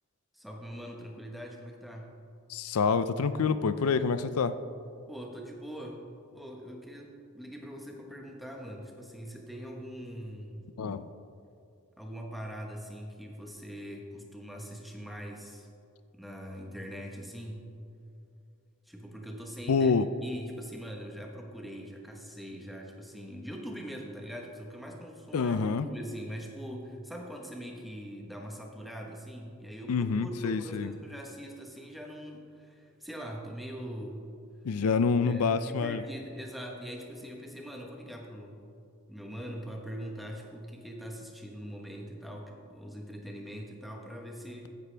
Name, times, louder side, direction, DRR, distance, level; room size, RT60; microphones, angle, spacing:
voice 1, 0.3-2.1 5.1-10.7 12.0-15.7 16.1-17.7 18.9-19.9 20.2-34.3 35.2-38.6 39.1-44.7, equal, ahead, 0 dB, 1.1 m, -42 dB
voice 2, 2.5-4.6 10.8-11.1 19.7-20.1 25.3-25.9 29.9-30.9 34.6-36.0, left 5 dB, 80° left, 12 dB, 0.5 m, -27 dB
15.0 x 10.5 x 3.4 m, 2.5 s
head